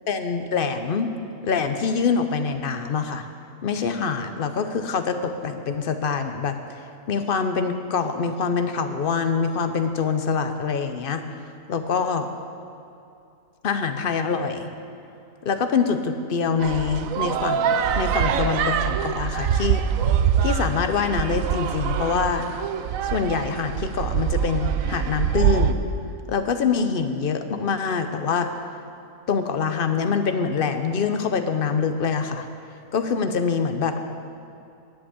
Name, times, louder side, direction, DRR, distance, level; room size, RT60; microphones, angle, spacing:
voice 1, 0.1-1.1 1.4-3.3 3.6-6.6 7.1-11.2 11.7-12.3 13.6-14.7 15.4-19.8 20.4-22.5 23.0-25.8 26.3-28.5 29.3-32.5 32.9-34.0, left 5 dB, 50° left, 8 dB, 0.6 m, -25 dB
sound 1, 16.6-25.7, right 8 dB, 70° right, 0.9 m, -24 dB
11.5 x 7.8 x 8.1 m, 2.6 s
omnidirectional pair, 1.6 m